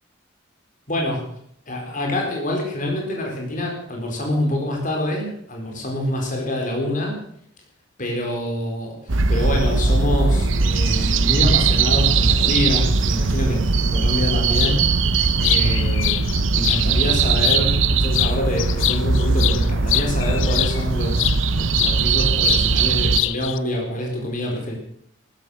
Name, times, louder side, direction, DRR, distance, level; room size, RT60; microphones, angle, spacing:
voice 1, 0.9-1.3 1.7-7.2 8.0-16.2 16.5-24.7, left 1 dB, 40° left, 1 dB, 4.3 m, -26 dB
sound 1, 9.1-23.2, right 4 dB, 85° right, 1.0 m, -20 dB
sound 2, 14.5-14.8 15.2-16.9 17.3-17.9 18.1-21.4 21.8-22.7 22.9-23.6, left 15 dB, 85° left, 0.6 m, -24 dB
15.0 x 13.5 x 6.5 m, 0.66 s
head